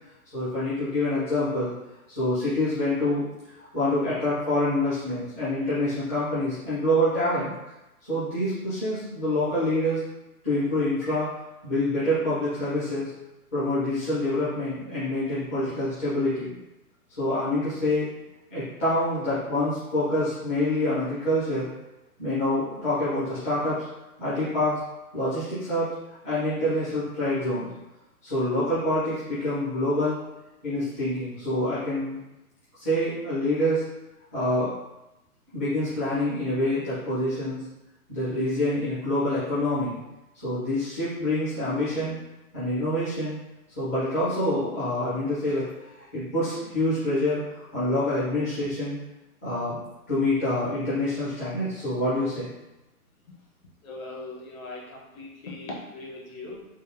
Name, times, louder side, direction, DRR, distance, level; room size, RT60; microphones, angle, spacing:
voice 1, 0.3-1.7 2.1-3.2 3.6-7.5 8.1-10.0 10.4-11.3 11.6-13.1 13.5-16.5 17.2-18.1 18.5-21.7 22.2-23.8 24.2-24.8 25.1-25.9 26.2-27.7 28.2-30.2 30.6-32.2 32.8-33.8 34.3-34.7 35.5-37.6 38.1-40.0 40.3-42.1 42.5-43.4 43.8-49.0 49.4-49.8 50.1-52.5, left 1 dB, 10° left, -14 dB, 0.4 m, -26 dB
voice 2, 53.8-56.7, left 2 dB, 60° left, -2 dB, 1.1 m, -39 dB
3.3 x 2.2 x 3.2 m, 0.97 s
figure-of-eight pair, 130°, 46 cm